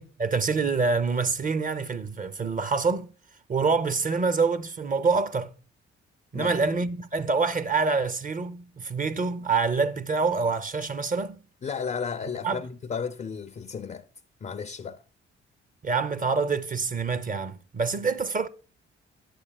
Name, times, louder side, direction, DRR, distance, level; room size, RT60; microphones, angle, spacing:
voice 1, 0.0-3.1 3.5-5.5 6.3-11.4 12.4-12.6 15.8-18.5, right 4 dB, 30° right, 0.6 m, -26 dB
voice 2, 11.6-14.1 14.4-15.0, left 6 dB, 25° left, 0.4 m, -33 dB
8.3 x 8.1 x 2.3 m
hypercardioid pair, 45°, 30 cm